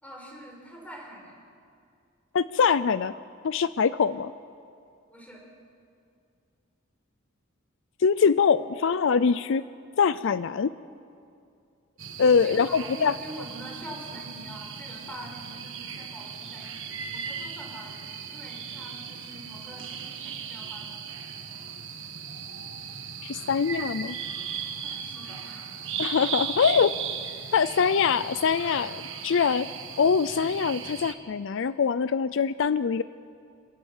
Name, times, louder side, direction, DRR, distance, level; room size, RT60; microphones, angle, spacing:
voice 1, 0.0-1.4 5.1-5.5 12.4-21.0 24.8-25.7, equal, 5° left, 0 dB, 4.7 m, -45 dB
voice 2, 2.3-3.1 3.4-4.3 8.0-9.7 10.0-10.7 12.2-13.1 23.2-24.2 26.0-26.9 27.5-29.7 30.0-33.0, left 6 dB, 65° left, 15 dB, 0.4 m, -23 dB
sound 1, 12.0-31.1, right 7 dB, 70° right, 1.7 m, -37 dB
27.0 x 17.5 x 7.3 m, 2.4 s
head